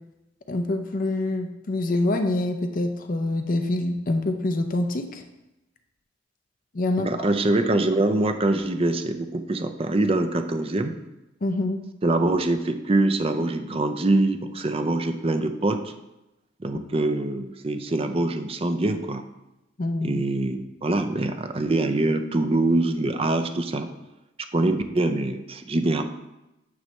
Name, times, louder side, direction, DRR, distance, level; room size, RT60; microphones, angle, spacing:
voice 1, 0.5-5.2 6.7-7.1 11.4-11.8 19.8-20.2, left 2 dB, 45° left, 6 dB, 0.6 m, -25 dB
voice 2, 7.0-11.0 12.0-15.9 16.6-19.2 20.0-23.9 24.5-26.0, right 2 dB, 30° right, 8 dB, 0.5 m, -24 dB
9.3 x 3.2 x 6.3 m, 0.95 s
head